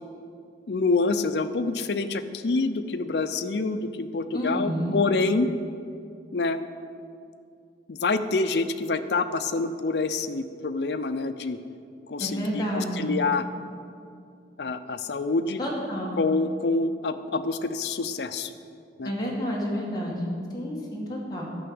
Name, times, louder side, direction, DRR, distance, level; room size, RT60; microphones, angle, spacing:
voice 1, 0.7-5.5 6.3-6.6 7.9-11.6 12.1-13.5 14.6-15.6 16.2-18.5 19.0-19.1, left 3 dB, 70° left, 10 dB, 0.5 m, -26 dB
voice 2, 4.3-5.0 12.2-13.1 15.6-16.1 19.0-21.4, equal, 20° left, -4 dB, 2.0 m, -30 dB
11.5 x 5.7 x 7.8 m, 2.4 s
head